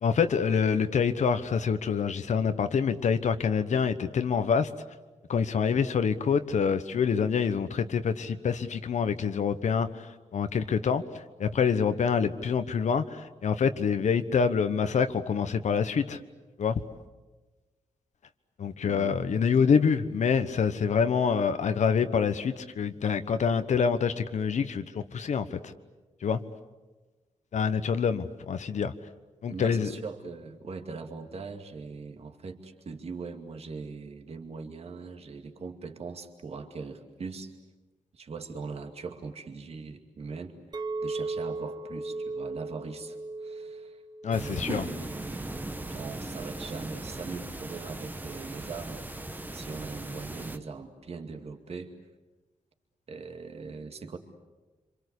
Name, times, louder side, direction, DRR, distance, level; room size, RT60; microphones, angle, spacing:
voice 1, 0.0-4.7 5.3-10.1 10.3-16.2 16.6-16.8 18.6-25.7 26.2-26.4 27.5-28.9 29.4-29.9 44.2-44.9, left 6 dB, 70° left, 10 dB, 1.2 m, -26 dB
voice 2, 18.8-19.2 29.5-37.5 38.1-45.5 45.9-49.1 49.5-51.9 53.1-54.2, right 4 dB, 55° right, 5 dB, 2.3 m, -41 dB
Chink clink, 40.7-45.9, right 3 dB, 35° right, 1.4 m, -37 dB
sound 1, 44.3-50.6, right 2 dB, 15° right, 1.2 m, -38 dB
27.0 x 26.5 x 8.3 m, 1.2 s
wide cardioid pair, 145°, 13 cm